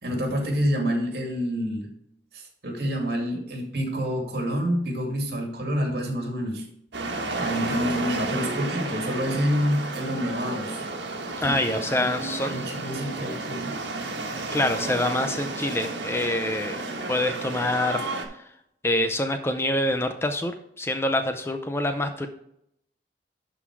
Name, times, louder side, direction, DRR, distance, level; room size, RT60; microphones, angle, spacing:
voice 1, 0.0-1.9 2.3-6.7 7.4-10.8 11.4-13.7, equal, 60° right, 2 dB, 2.3 m, -28 dB
sound 1, 6.9-18.3, right 2 dB, 90° right, 1.4 m, -32 dB
voice 2, 11.4-12.5 14.5-16.8 17.1-18.0 18.8-22.3, left 1 dB, 15° left, 7 dB, 0.5 m, -26 dB
12.0 x 4.0 x 4.6 m, 0.76 s
head